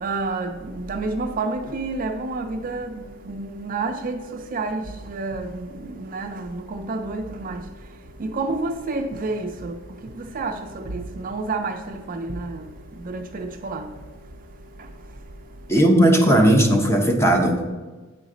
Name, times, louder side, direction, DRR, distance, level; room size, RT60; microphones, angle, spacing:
voice 1, 0.0-7.6 8.2-12.7 13.0-13.9 14.8-14.9, right 3 dB, 45° right, 0.4 m, -29 dB
voice 2, 15.7-17.7, right 1 dB, 15° left, 0.8 m, -17 dB
8.4 x 4.0 x 4.9 m
head